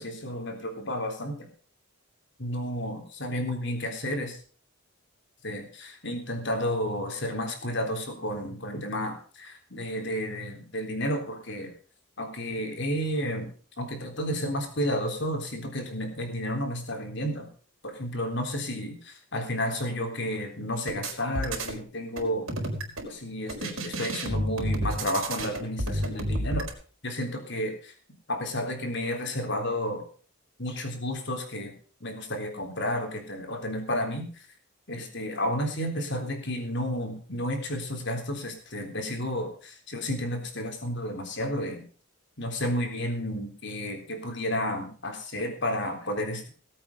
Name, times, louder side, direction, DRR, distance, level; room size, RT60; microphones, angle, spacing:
voice 1, 0.0-1.5 2.4-4.4 5.4-11.7 12.2-13.5 13.8-17.5 17.8-22.5 23.0-26.7 27.0-27.9 28.3-30.0 30.6-31.7 32.0-34.5 34.9-41.8 42.4-46.5, equal, 55° left, 4 dB, 3.7 m, -31 dB
sound 1, 20.9-21.8 22.2-23.1 23.5-26.7, right 1 dB, 70° right, 4.6 m, -31 dB
19.0 x 8.5 x 5.7 m, 0.42 s
head